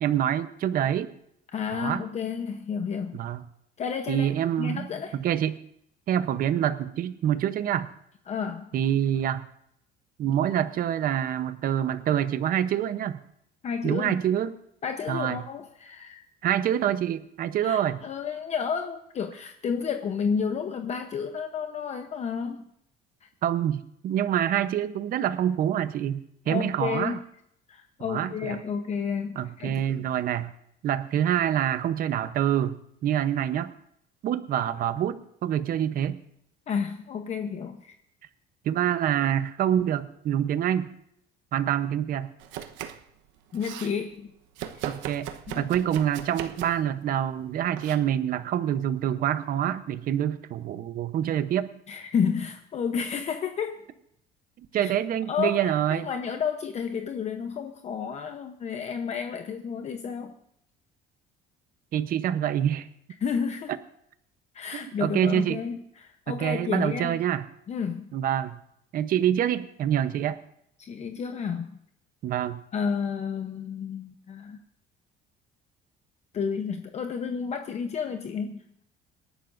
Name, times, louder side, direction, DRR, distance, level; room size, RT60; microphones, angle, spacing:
voice 1, 0.0-1.1 1.7-2.0 3.1-3.4 4.1-5.6 6.1-7.9 8.7-9.4 10.2-13.2 13.8-14.5 15.1-15.4 16.4-18.0 23.4-27.2 28.1-28.6 29.4-30.5 30.8-33.7 34.2-36.2 38.6-40.9 41.5-42.3 44.8-45.3 45.6-51.7 54.6-56.1 61.9-62.9 65.0-65.6 66.3-67.4 68.1-68.6 68.9-70.4 72.2-72.6, right 10 dB, 50° right, 12 dB, 0.8 m, -26 dB
voice 2, 1.5-3.2 3.8-4.3 4.6-5.2 8.3-8.7 13.6-14.2 14.8-16.2 17.6-22.7 23.2-23.3 26.5-27.2 27.7-30.0 36.7-38.0 43.5-44.3 45.5-45.6 51.9-53.8 54.7-54.9 55.3-60.3 63.2-63.7 64.5-67.2 67.7-68.1 70.8-71.8 72.7-74.6 76.3-78.8, left 6 dB, 35° left, 6 dB, 0.9 m, -31 dB
Domestic sounds home sounds, 42.4-43.1 43.4-43.9 44.6-46.9 47.8-48.0, right 10 dB, 85° right, 1.1 m, -38 dB
27.0 x 11.5 x 2.6 m, 0.73 s
cardioid pair, 145°, 19 cm